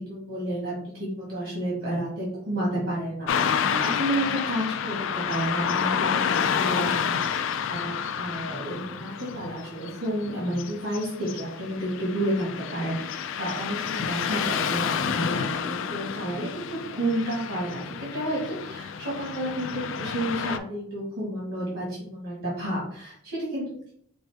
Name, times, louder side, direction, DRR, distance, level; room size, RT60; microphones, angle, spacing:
voice 1, 0.0-23.6, right 1 dB, 70° right, -5 dB, 1.7 m, -31 dB
Car passing by / Traffic noise roadway noise, 3.3-20.6, left 7 dB, 70° left, 0.3 m, -29 dB
5.4 x 2.6 x 3.4 m, 0.63 s
head